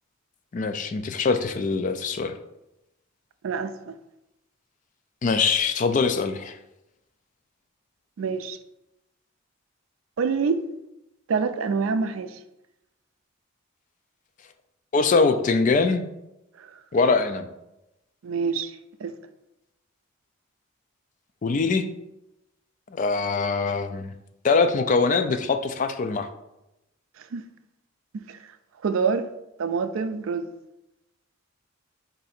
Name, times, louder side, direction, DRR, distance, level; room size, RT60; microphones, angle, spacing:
voice 1, 0.5-2.4 5.2-6.6 14.9-16.1 16.9-17.5 21.4-21.9 22.9-24.1 24.4-26.3, left 4 dB, 40° left, 0.3 m, -23 dB
voice 2, 3.4-3.9 8.2-8.6 10.2-10.7 11.3-12.4 16.6-16.8 18.2-19.1 27.2-27.4 28.1-28.5 28.8-29.3 29.6-30.5, right 5 dB, 75° right, 0.4 m, -27 dB
4.7 x 2.6 x 4.2 m
head